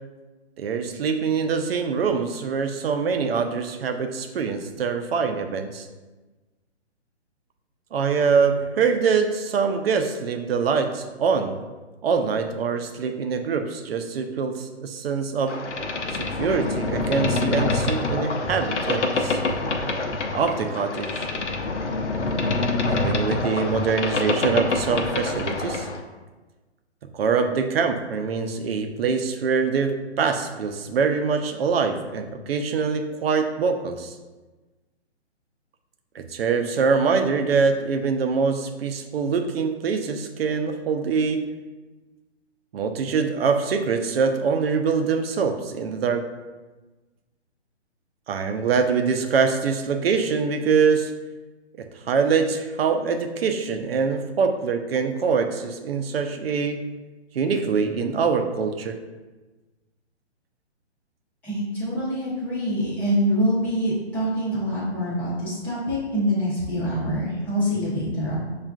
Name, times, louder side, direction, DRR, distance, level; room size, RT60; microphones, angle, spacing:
voice 1, 0.6-5.9 7.9-11.6 12.0-15.6 16.1-19.4 20.3-21.3 22.9-25.9 27.1-34.1 36.1-41.5 42.7-46.3 48.3-51.1 51.8-56.8 57.3-59.0, right 5 dB, 60° right, 6 dB, 0.5 m, -24 dB
Boat Water vehicle, 15.5-26.0, left 3 dB, 80° left, 0.6 m, -26 dB
voice 2, 61.4-68.4, equal, 5° left, -10 dB, 0.4 m, -25 dB
6.2 x 2.4 x 2.3 m, 1.2 s
figure-of-eight pair, 135°, 34 cm